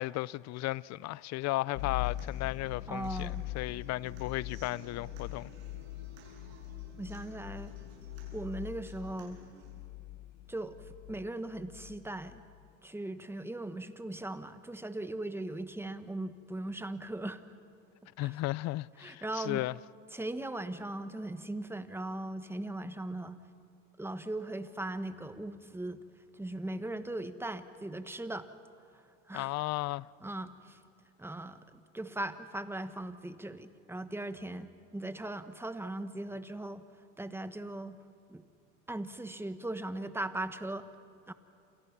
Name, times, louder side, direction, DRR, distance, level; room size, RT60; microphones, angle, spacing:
voice 1, 0.0-5.5 18.2-19.7 29.3-30.1, left 18 dB, 45° left, 0.5 m, -35 dB
sound 1, 1.7-12.7, left 16 dB, 70° left, 1.2 m, -42 dB
Human voice / Acoustic guitar, 1.7-9.7, right 4 dB, 85° right, 7.8 m, -56 dB
voice 2, 2.9-3.4 7.0-7.7 8.3-9.4 10.5-10.8 11.1-12.4 12.8-17.4 18.2-18.3 19.0-19.6 20.1-23.4 24.0-26.0 26.3-28.5 29.3-29.5 30.2-30.8 31.2-36.8 37.2-38.0 38.3-38.4 38.9-40.9 41.3-41.4, right 1 dB, 5° right, 1.4 m, -39 dB
28.5 x 27.0 x 5.9 m
hypercardioid pair, 90°, 38 cm